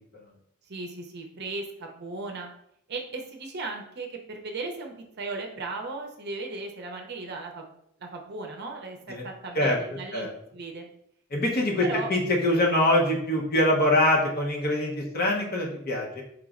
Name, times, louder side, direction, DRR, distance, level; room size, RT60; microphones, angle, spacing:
voice 1, 0.7-2.5 2.9-7.7 8.0-10.9 11.8-12.1, right 3 dB, 50° right, 2 dB, 0.6 m, -36 dB
voice 2, 11.3-16.2, left 1 dB, 45° left, -2 dB, 0.9 m, -24 dB
4.7 x 3.0 x 2.5 m, 0.72 s
head